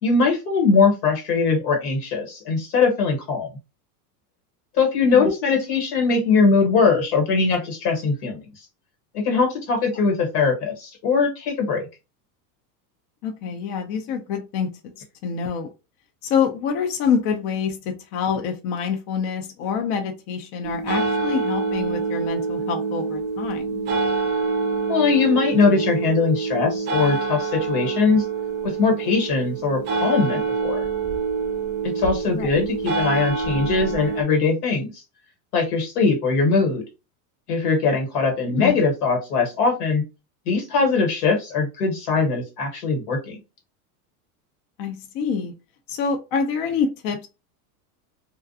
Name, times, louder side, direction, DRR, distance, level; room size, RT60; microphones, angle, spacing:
voice 1, 0.0-3.5 4.7-8.4 9.1-11.8 24.9-28.2 28.6-30.8 31.9-35.0 35.5-36.8 37.5-40.0 40.5-43.4, left 4 dB, 85° left, 1.4 m, -21 dB
voice 2, 13.2-14.9 15.2-15.7 16.2-23.8 32.3-32.5 38.5-38.8 44.8-45.5 45.9-47.3, left 6 dB, 45° left, 0.5 m, -26 dB
sound 1, 20.6-34.2, right 4 dB, 25° right, 0.4 m, -26 dB
2.4 x 2.2 x 2.6 m
supercardioid pair, 130°, 46 cm